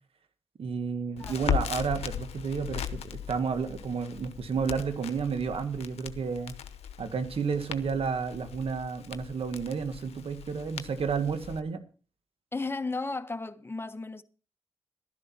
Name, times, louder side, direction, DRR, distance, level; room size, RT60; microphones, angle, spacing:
voice 1, 0.6-6.5 7.0-11.8, right 5 dB, 65° right, 1.7 m, -31 dB
Crackle, 1.2-11.6, left 9 dB, 80° left, 0.9 m, -38 dB
voice 2, 12.5-14.2, left 3 dB, 20° left, 1.2 m, -34 dB
12.5 x 10.5 x 4.4 m
supercardioid pair, 45°, 11 cm